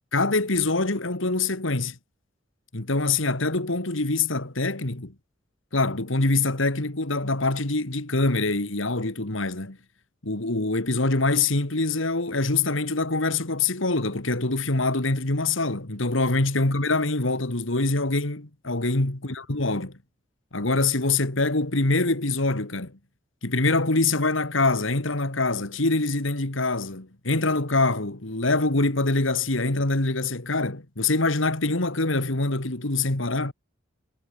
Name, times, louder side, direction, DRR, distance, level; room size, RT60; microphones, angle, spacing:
voice 1, 0.1-2.0 2.7-5.1 5.7-9.8 10.2-20.0 20.5-23.0 23.4-33.5, left 3 dB, 70° left, 2.4 m, -24 dB
head